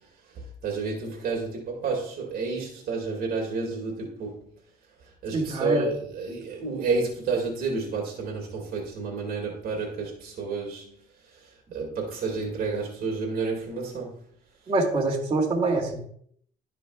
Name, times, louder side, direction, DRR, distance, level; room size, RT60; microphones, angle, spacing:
voice 1, 0.3-4.4 5.0-14.2, right 4 dB, 60° right, 2.0 m, -31 dB
voice 2, 5.3-5.9 14.7-16.0, right 2 dB, 30° right, 2.4 m, -25 dB
12.0 x 4.9 x 2.3 m
cardioid pair, 110°, 17 cm